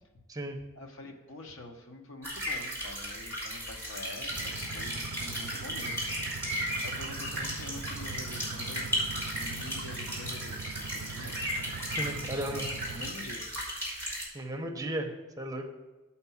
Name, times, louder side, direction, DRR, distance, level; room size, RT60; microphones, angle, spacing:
voice 1, 0.8-6.0 6.8-11.4 12.1-13.4, left 2 dB, 70° left, 3 dB, 1.0 m, -46 dB
sound 1, 2.2-14.2, equal, 10° left, 3.3 m, -35 dB
sound 2, 4.3-13.1, right 4 dB, 85° right, 0.4 m, -42 dB
voice 2, 12.0-12.7 14.3-15.7, right 1 dB, 15° right, 3 dB, 0.8 m, -35 dB
8.0 x 4.3 x 7.1 m, 1.1 s
head